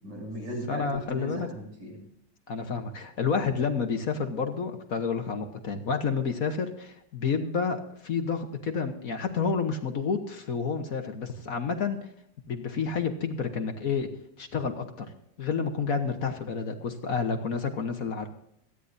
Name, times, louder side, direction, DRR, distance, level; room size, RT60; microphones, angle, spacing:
voice 1, 0.0-2.1, equal, 75° right, -2 dB, 7.8 m, -37 dB
voice 2, 0.7-1.5 2.5-12.0 12.5-14.1 14.4-15.1 15.4-18.3, left 5 dB, 55° left, 6 dB, 1.5 m, -30 dB
26.5 x 10.0 x 2.6 m, 0.74 s
omnidirectional pair, 1.9 m